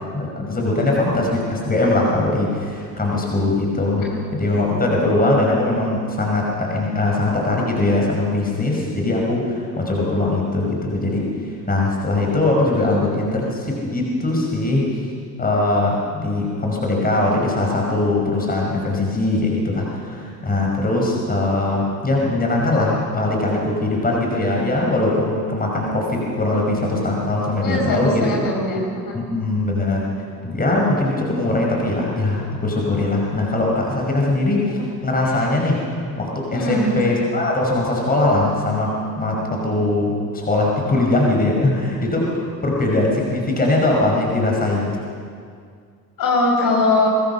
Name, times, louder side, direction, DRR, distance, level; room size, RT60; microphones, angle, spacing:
voice 1, 0.1-4.0 4.3-15.1 15.4-28.3 29.1-30.1 30.4-44.9, left 2 dB, 20° left, -1 dB, 5.8 m, -21 dB
voice 2, 27.6-29.2 35.3-35.5 36.5-36.9 46.2-47.1, left 2 dB, 45° left, -1 dB, 6.3 m, -21 dB
24.0 x 22.0 x 5.7 m, 2.1 s
figure-of-eight pair, 55°, 48 cm